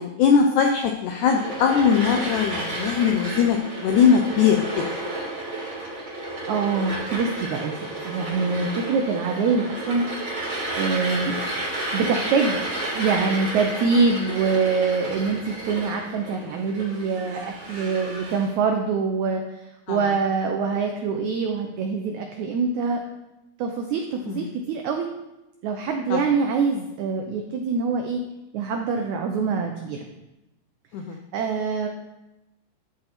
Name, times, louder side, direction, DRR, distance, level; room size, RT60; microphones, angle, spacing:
voice 1, 0.0-4.8 19.9-20.1 24.3-24.5 26.1-26.2 30.9-31.2, left 6 dB, 85° left, 3 dB, 1.7 m, -21 dB
sound 1, 1.2-18.5, right 1 dB, 35° right, 4.2 m, -32 dB
voice 2, 6.2-10.1 10.8-11.4 11.9-12.6 12.9-23.0 23.6-25.1 25.6-28.2 28.5-30.1 31.3-31.9, right 4 dB, 85° right, 3 dB, 1.6 m, -24 dB
12.5 x 4.8 x 4.3 m, 0.96 s
omnidirectional pair, 4.2 m